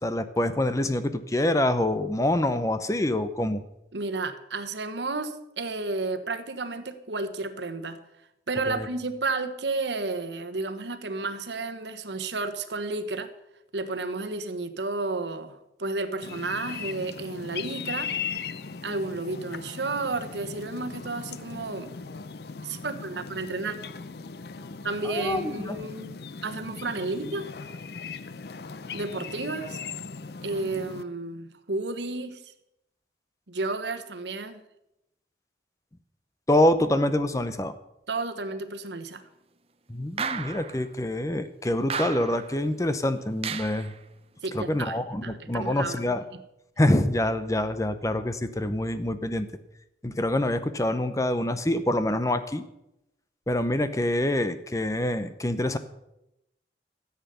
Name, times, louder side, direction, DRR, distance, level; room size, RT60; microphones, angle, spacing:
voice 1, 0.0-3.6 8.7-8.9 25.0-25.8 36.5-37.7 39.9-43.9 44.5-46.2 46.8-49.5 50.0-52.6 53.5-55.8, left 1 dB, 20° left, 11 dB, 0.6 m, -26 dB
voice 2, 3.9-8.0 8.5-13.3 13.7-18.1 18.8-21.9 22.6-23.8 24.8-26.2 26.4-27.5 28.9-29.8 30.4-32.5 33.5-34.6 38.1-39.2 44.4-45.0 45.2-46.0, right 3 dB, 85° right, 10 dB, 1.1 m, -32 dB
sound 1, 16.2-31.0, left 5 dB, 65° left, 0.6 m, -38 dB
sound 2, 40.2-40.8 41.9-42.6 43.4-43.9, right 6 dB, 35° right, 0.6 m, -33 dB
13.5 x 8.2 x 6.8 m, 0.86 s
head